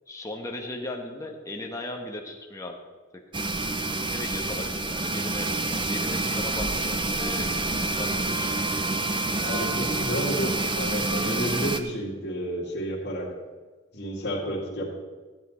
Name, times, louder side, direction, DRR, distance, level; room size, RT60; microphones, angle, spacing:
voice 1, 0.1-2.8 4.0-5.5 5.9-8.5, left 2 dB, 15° left, 1 dB, 1.1 m, -37 dB
sound 1, 3.3-11.8, right 2 dB, 25° right, 0.5 m, -27 dB
voice 2, 9.4-10.5 10.8-13.3 13.9-14.9, equal, 55° left, -4 dB, 2.5 m, -31 dB
13.5 x 8.5 x 4.3 m, 1.4 s
head